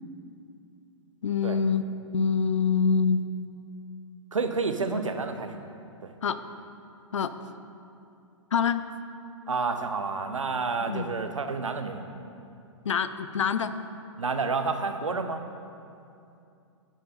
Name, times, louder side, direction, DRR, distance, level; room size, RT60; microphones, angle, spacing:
voice 1, 1.2-1.8 2.1-3.2 6.2-6.4 7.1-7.3 8.5-8.8 10.9-11.1 12.8-13.7, left 6 dB, 70° left, 12 dB, 0.5 m, -25 dB
voice 2, 4.3-5.7 6.0-6.1 9.5-12.0 14.2-15.4, right 4 dB, 85° right, 8 dB, 0.6 m, -29 dB
9.8 x 5.4 x 4.2 m, 2.6 s
figure-of-eight pair, 115°, 16 cm